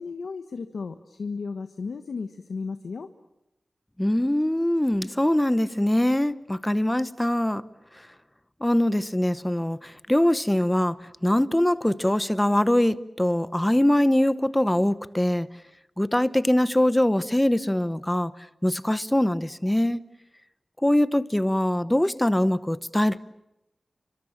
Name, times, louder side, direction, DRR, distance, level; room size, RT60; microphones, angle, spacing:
voice 1, 0.0-3.1, left 4 dB, 90° left, 1.3 m, -34 dB
voice 2, 4.0-7.6 8.6-11.0 11.2-15.5 16.0-18.3 18.6-20.0 20.8-23.2, left 1 dB, 10° left, 0.9 m, -23 dB
29.5 x 25.0 x 7.4 m
wide cardioid pair, 110°, 0 cm